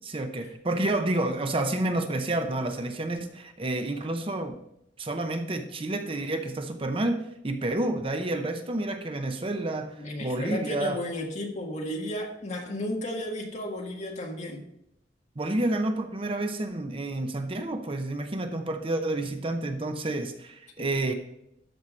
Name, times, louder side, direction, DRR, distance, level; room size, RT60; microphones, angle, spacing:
voice 1, 0.1-4.5 5.0-11.0 15.4-21.1, right 2 dB, 30° right, 7 dB, 0.7 m, -29 dB
voice 2, 10.0-14.6, left 1 dB, 40° left, 1 dB, 1.7 m, -33 dB
13.0 x 4.7 x 5.2 m, 0.79 s
head